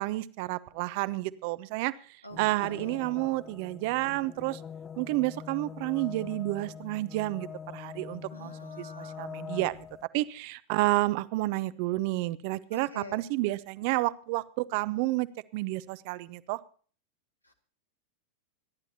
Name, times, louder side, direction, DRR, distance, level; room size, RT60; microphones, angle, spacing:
voice 1, 0.0-1.9 2.4-4.6 5.0-7.5 7.7-9.8 10.1-15.3 15.5-16.6, right 19 dB, 45° right, 16 dB, 0.8 m, -30 dB
voice 2, 2.2-3.0 8.3-9.3 12.7-13.2 17.4-17.5, left 1 dB, 85° left, 5 dB, 2.0 m, -46 dB
sound 1, 2.3-10.0, left 7 dB, 20° left, 0.5 m, -44 dB
25.5 x 11.5 x 2.8 m, 0.42 s
figure-of-eight pair, 90°, 0 cm